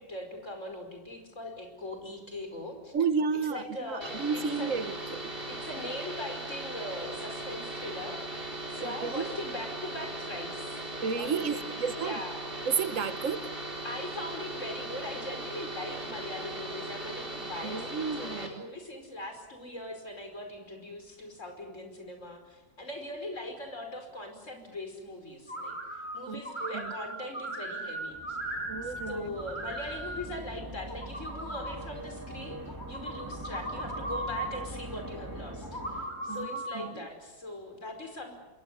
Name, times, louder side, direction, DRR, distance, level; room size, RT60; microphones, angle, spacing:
voice 1, 0.0-2.9 3.5-4.8 5.5-8.2 8.7-12.4 13.8-28.4 28.8-38.3, left 1 dB, 75° left, 5.6 m, -41 dB
voice 2, 2.9-5.2 8.8-9.3 11.0-12.2 12.7-13.5 17.6-18.5 26.3-26.9 28.7-29.3 36.3-37.1, right 5 dB, 85° right, 1.6 m, -32 dB
sound 1, 4.0-18.5, right 2 dB, 45° right, 4.4 m, -38 dB
sound 2, 25.5-26.2 26.4-29.1 29.3-30.2 30.8-31.7 32.7-34.5 35.6-36.8, right 1 dB, 35° left, 4.8 m, -37 dB
sound 3, 28.1-36.6, right 1 dB, 15° right, 2.5 m, -43 dB
27.0 x 22.0 x 8.2 m
omnidirectional pair, 1.3 m